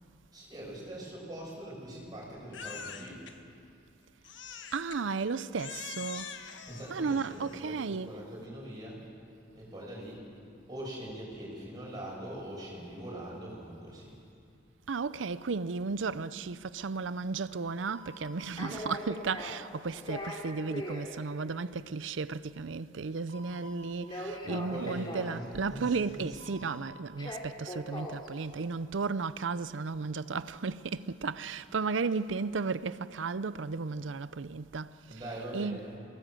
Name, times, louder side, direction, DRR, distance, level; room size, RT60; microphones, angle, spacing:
voice 1, 0.3-3.2 6.7-9.0 9.5-10.2 10.7-14.1 24.4-26.5 35.1-36.0, right 1 dB, 20° right, 7.1 m, -42 dB
Crying sobbing, 2.5-3.3 4.2-5.0 5.6-7.7, left 7 dB, 75° left, 1.3 m, -44 dB
voice 2, 4.7-6.3 6.9-8.3 14.9-35.8, right 4 dB, 85° right, 0.6 m, -34 dB
sound 1, 17.5-17.6 17.9-18.3 18.6-19.6 19.9-21.1 23.3-23.7 24.0-25.4 26.4-26.8 27.2-28.3 32.1-32.3, left 1 dB, 25° left, 3.0 m, -40 dB
23.0 x 18.0 x 7.7 m
head